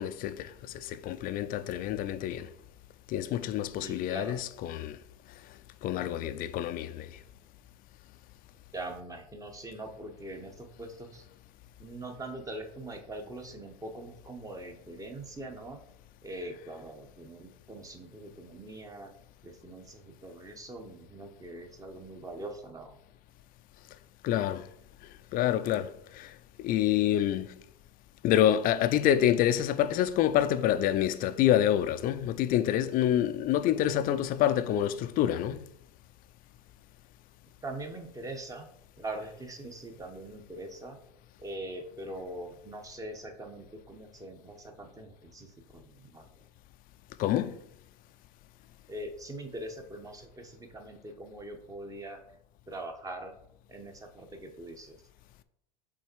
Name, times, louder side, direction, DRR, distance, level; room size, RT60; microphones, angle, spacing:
voice 1, 0.0-2.5 3.1-5.0 5.8-7.2 24.2-24.7 25.3-27.5 28.2-35.6 47.2-47.6, left 11 dB, 45° left, 0.5 m, -27 dB
voice 2, 3.8-4.4 8.7-11.2 11.8-15.8 16.2-19.1 19.4-23.0 33.7-33.9 37.6-38.7 39.0-46.5 48.9-52.2 52.7-53.3 53.7-55.0, right 1 dB, 15° right, 1.3 m, -42 dB
6.1 x 4.1 x 4.6 m
hypercardioid pair, 95°, 21 cm